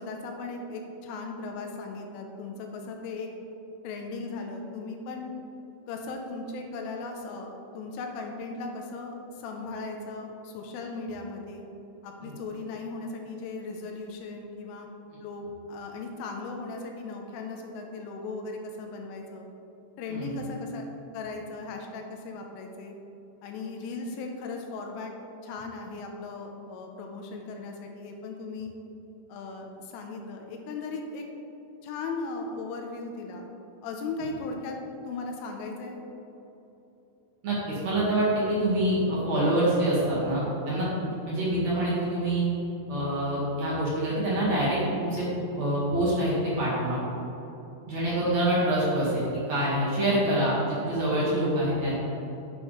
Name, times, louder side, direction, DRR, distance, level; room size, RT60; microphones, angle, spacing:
voice 1, 0.0-3.3 3.8-5.3 5.9-11.6 12.0-14.9 15.2-19.5 20.0-20.8 21.1-22.9 23.4-25.1 25.4-28.7 29.3-31.2 31.8-33.5 33.8-34.8 35.1-36.0, left 3 dB, 80° left, 3 dB, 3.3 m, -37 dB
voice 2, 37.4-42.5 42.9-47.0 47.9-51.9, right 1 dB, 55° right, -8 dB, 2.1 m, -26 dB
9.5 x 8.4 x 3.3 m, 3.0 s
omnidirectional pair, 5.9 m